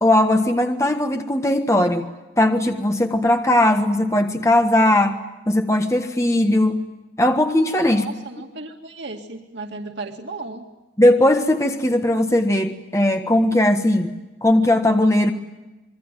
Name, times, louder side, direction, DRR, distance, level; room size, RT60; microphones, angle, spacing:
voice 1, 0.0-2.1 2.4-5.2 5.5-6.8 7.2-8.0 11.0-14.1 14.4-15.3, left 1 dB, 15° left, 5 dB, 1.4 m, -18 dB
voice 2, 7.8-10.6, right 3 dB, 90° right, 2 dB, 2.3 m, -35 dB
27.0 x 23.0 x 9.2 m, 1.1 s
head